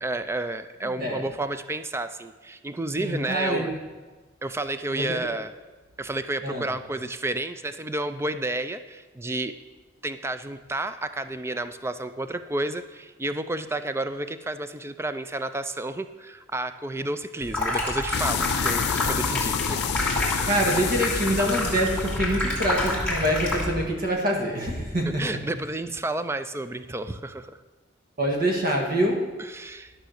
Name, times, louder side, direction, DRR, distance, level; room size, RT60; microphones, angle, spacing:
voice 1, 0.0-3.7 4.4-5.5 6.0-9.5 10.0-19.8 25.2-27.6 29.4-29.9, right 2 dB, 15° right, 10 dB, 0.4 m, -31 dB
voice 2, 0.8-1.2 3.0-3.7 4.9-5.3 6.4-6.7 20.5-25.4 28.2-29.3, right 1 dB, 50° right, 0 dB, 1.8 m, -25 dB
Water tap faucet / Sink (filling or washing), 17.4-23.9, left 2 dB, 5° left, 2.7 m, -28 dB
sound 1, 18.1-24.6, left 9 dB, 60° left, 0.3 m, -31 dB
12.0 x 6.1 x 6.5 m, 1.3 s
head